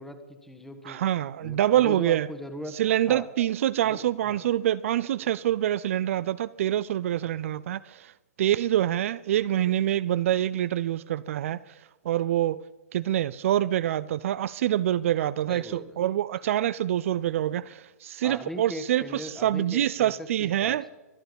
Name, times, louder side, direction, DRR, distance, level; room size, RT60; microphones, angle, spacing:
voice 1, 0.0-1.0 1.4-2.8 3.1-3.3 3.8-4.5 15.5-16.0 18.2-20.9, left 1 dB, 5° left, 1.5 m, -40 dB
voice 2, 0.9-2.3 2.8-8.1 8.4-11.6 12.1-12.6 12.9-20.8, right 12 dB, 55° right, 0.5 m, -26 dB
24.0 x 9.0 x 5.3 m
hypercardioid pair, 135°, 9 cm